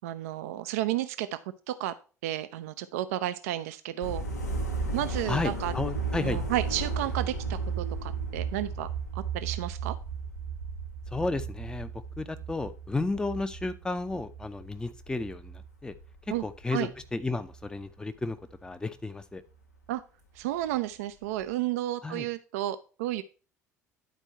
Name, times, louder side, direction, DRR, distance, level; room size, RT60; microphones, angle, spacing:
voice 1, 0.0-1.4 1.7-1.9 2.2-4.2 4.9-5.7 6.2-8.9 9.1-10.0 16.3-16.4 16.7-16.9 19.9-20.0 20.4-23.2, right 14 dB, 65° right, 12 dB, 0.4 m, -32 dB
sound 1, 4.0-16.6 16.9-17.8 18.4-18.6, right 4 dB, 85° left, 1.0 m, -35 dB
voice 2, 5.3-6.4 11.1-15.9 16.2-19.4 22.0-22.3, left 3 dB, 10° left, 9 dB, 0.6 m, -33 dB
10.5 x 4.5 x 4.3 m, 0.37 s
figure-of-eight pair, 60°, 9 cm